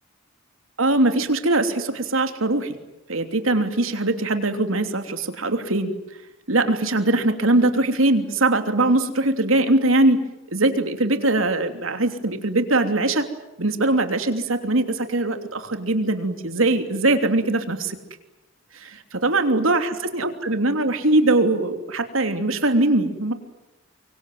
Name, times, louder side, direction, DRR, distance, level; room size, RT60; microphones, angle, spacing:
voice 1, 0.8-2.8 3.1-5.9 6.5-13.3 13.6-18.0 18.7-23.3, right 2 dB, 85° right, 7 dB, 3.1 m, -21 dB
24.5 x 24.0 x 9.4 m, 0.96 s
head